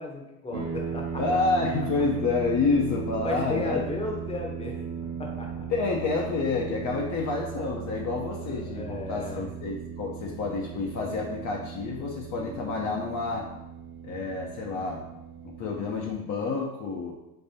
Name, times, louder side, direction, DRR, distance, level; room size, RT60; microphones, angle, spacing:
voice 1, 0.0-1.2 3.2-4.8 5.2-5.7 8.4-9.4 12.3-12.8, left 2 dB, 15° left, 1 dB, 0.9 m, -35 dB
sound 1, 0.5-16.1, right 7 dB, 75° right, 1.0 m, -37 dB
voice 2, 1.2-3.8 5.7-13.5 14.0-15.1 15.4-17.1, left 4 dB, 40° left, -2 dB, 0.7 m, -29 dB
5.4 x 2.5 x 2.8 m, 0.94 s
hypercardioid pair, 80°, 46 cm